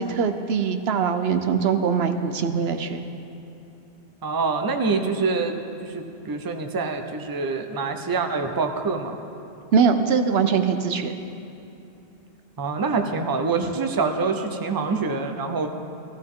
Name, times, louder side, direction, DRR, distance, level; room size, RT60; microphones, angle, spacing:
voice 1, 0.0-3.0 9.7-11.2, right 6 dB, 70° right, 8 dB, 0.9 m, -22 dB
voice 2, 4.2-9.2 12.6-15.7, right 4 dB, 25° right, 6 dB, 0.6 m, -25 dB
15.5 x 15.0 x 3.7 m, 2.7 s
omnidirectional pair, 1.1 m